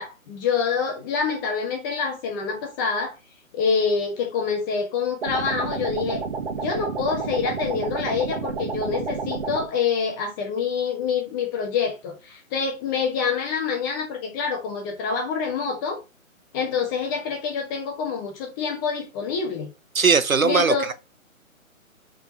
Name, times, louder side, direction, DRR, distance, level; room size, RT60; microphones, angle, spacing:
voice 1, 0.0-3.1 3.5-6.2 6.5-16.0 16.5-19.7 20.4-20.9, left 5 dB, 15° left, 1.3 m, -26 dB
sound 1, 5.2-9.7, right 5 dB, 40° right, 1.7 m, -30 dB
voice 2, 19.9-20.9, right 5 dB, 75° right, 1.1 m, -19 dB
5.1 x 5.1 x 5.2 m
figure-of-eight pair, 140°, 42 cm